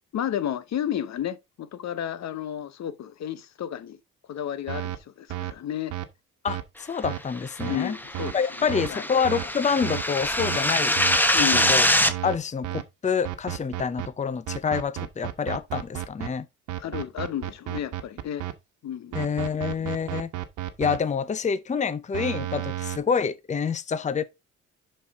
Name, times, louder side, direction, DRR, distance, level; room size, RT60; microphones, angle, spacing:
voice 1, 0.1-4.0 4.3-5.9 7.6-9.0 11.3-11.8 16.8-18.5 18.8-19.2, left 10 dB, 60° left, 0.9 m, -32 dB
sound 1, 4.7-5.0 5.3-5.5 5.9-6.0 6.5-6.6 7.0-7.2 7.6-7.8 8.1-8.3 8.7-8.9 9.2-9.4 9.8-10.0 10.4-10.6 11.0-11.2 11.5-11.7 12.1-12.4 12.6-12.8 13.2-14.1 14.5-16.3 16.7-18.5 19.1-21.0 22.1-23.0, right 13 dB, 85° right, 1.2 m, -32 dB
voice 2, 6.4-8.0 8.3-11.0 11.4-11.9 12.2-16.5 19.1-20.3 20.8-24.2, left 6 dB, 25° left, 0.7 m, -27 dB
sound 2, 7.7-12.1, left 1 dB, 5° left, 1.0 m, -24 dB
11.0 x 4.4 x 3.5 m
cardioid pair, 90°, 30 cm